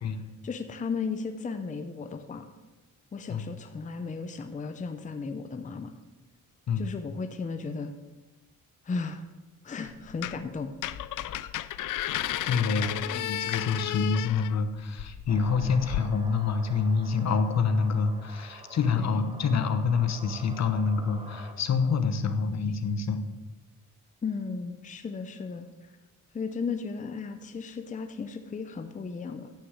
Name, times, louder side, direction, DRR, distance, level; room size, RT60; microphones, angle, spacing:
voice 1, 0.1-2.5 3.1-5.9 6.8-7.9 8.8-9.2 9.6-10.7 19.0-19.2 24.2-25.9 26.3-29.6, left 4 dB, 25° left, 8 dB, 0.6 m, -35 dB
sound 1, 9.8-10.5 10.8-16.0, left 13 dB, 75° left, 0.5 m, -33 dB
voice 2, 12.3-23.2, left 5 dB, 55° left, 9 dB, 1.0 m, -27 dB
sound 2, 15.3-21.5, right 3 dB, 20° right, 1.0 m, -48 dB
10.0 x 6.4 x 7.4 m, 1.2 s
wide cardioid pair, 150°, 32 cm